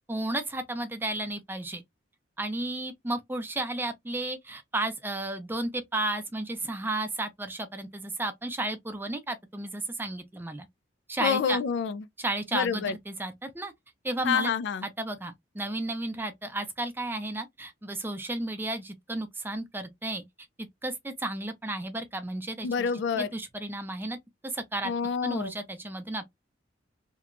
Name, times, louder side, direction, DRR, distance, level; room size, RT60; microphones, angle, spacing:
voice 1, 0.1-1.8 2.4-10.7 11.1-11.6 12.2-13.7 14.0-14.5 14.8-20.2 20.8-22.9 23.2-24.2 24.4-24.9 25.2-26.2, right 2 dB, 10° right, 0.5 m, -33 dB
voice 2, 11.2-12.1 12.5-12.9 14.2-14.9 22.6-23.3 24.8-25.5, left 6 dB, 65° left, 0.3 m, -28 dB
2.8 x 2.2 x 2.4 m
head